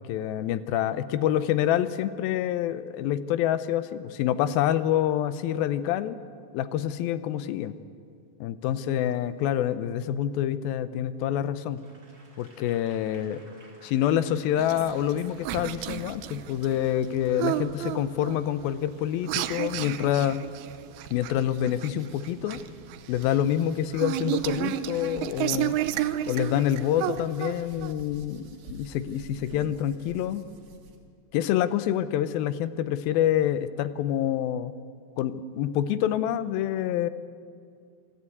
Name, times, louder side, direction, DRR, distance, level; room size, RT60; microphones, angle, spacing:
voice 1, 0.0-6.2 6.5-7.7 8.4-11.8 12.4-13.4 13.8-20.5 21.1-22.6 23.1-25.8 26.3-30.4 31.3-34.7 35.2-37.1, left 11 dB, 80° left, 13 dB, 2.5 m, -27 dB
Applause / Crowd, 11.7-17.4 18.0-18.1, right 2 dB, 25° right, 3.2 m, -56 dB
sound 1, 14.6-27.9, right 13 dB, 90° right, 2.6 m, -32 dB
sound 2, 15.3-31.0, right 5 dB, 70° right, 3.7 m, -53 dB
26.5 x 13.0 x 8.4 m, 2.3 s
omnidirectional pair, 4.3 m